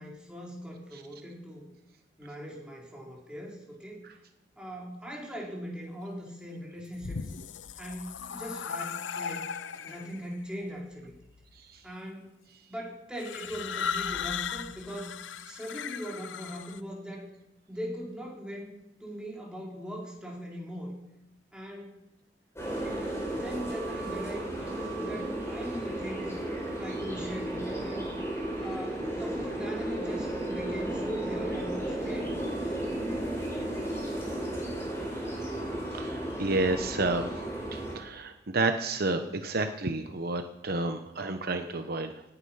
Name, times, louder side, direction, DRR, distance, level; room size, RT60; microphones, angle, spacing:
voice 1, 0.0-1.7 2.2-4.0 4.6-7.2 7.8-9.5 9.8-11.1 11.8-12.3 12.7-15.2 15.4-17.3 17.7-18.7 19.0-21.0 21.5-21.9 22.8-26.4 26.8-28.1 28.6-32.4, equal, 5° right, -3 dB, 3.7 m, -40 dB
sound 1, 6.8-10.2 11.1-11.6 13.2-16.8, left 7 dB, 85° left, 0.6 m, -37 dB
sound 2, 22.6-38.0, right 1 dB, 15° left, 4.8 m, -34 dB
voice 2, 35.9-42.2, right 2 dB, 55° right, 7 dB, 1.0 m, -31 dB
18.0 x 10.0 x 5.7 m, 0.90 s
head